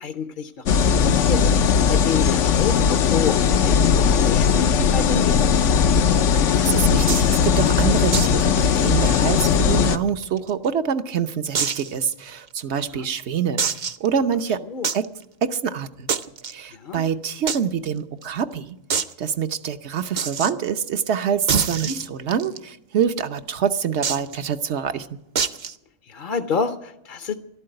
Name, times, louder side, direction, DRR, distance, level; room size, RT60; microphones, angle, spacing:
voice 1, 0.0-1.5 1.9-5.5 12.9-13.1 14.7-14.9 16.7-17.0 21.8-22.0 26.1-27.3, left 5 dB, 45° left, 8 dB, 0.8 m, -29 dB
sound 1, 0.7-10.0, left 7 dB, 75° left, 1.0 m, -18 dB
voice 2, 6.3-13.6 14.0-14.6 14.9-15.1 15.4-16.1 16.5-18.7 19.2-25.1, right 7 dB, 65° right, 10 dB, 1.1 m, -25 dB
sound 2, 7.1-7.4 8.1-8.4 8.7-8.8 9.2-9.3 9.9-10.7 11.5-11.9 12.5-12.6 13.6-14.1 14.8-15.1 16.1-16.5 17.5-17.6 17.9-18.0 18.2-18.3 18.9-19.1 20.2-20.5 21.5-22.6 24.0-24.4 25.4-25.7, right 6 dB, 45° right, 0.7 m, -25 dB
13.5 x 12.0 x 7.7 m, 0.87 s
omnidirectional pair, 1.3 m